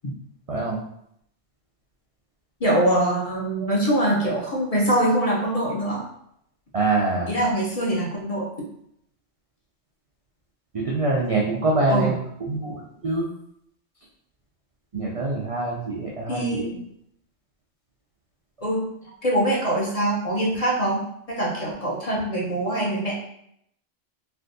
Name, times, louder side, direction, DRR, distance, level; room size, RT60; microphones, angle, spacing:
voice 1, 0.5-0.8 6.7-7.4 10.7-12.1 12.4-13.3 14.9-16.7, right 2 dB, 55° right, -4 dB, 0.4 m, -25 dB
voice 2, 2.6-6.0 7.3-8.5 11.9-12.1 16.3-16.8 18.6-18.9 19.2-21.0 21.4-23.1, right 1 dB, 40° left, -4 dB, 0.7 m, -23 dB
3.4 x 2.5 x 2.6 m, 0.73 s
omnidirectional pair, 1.2 m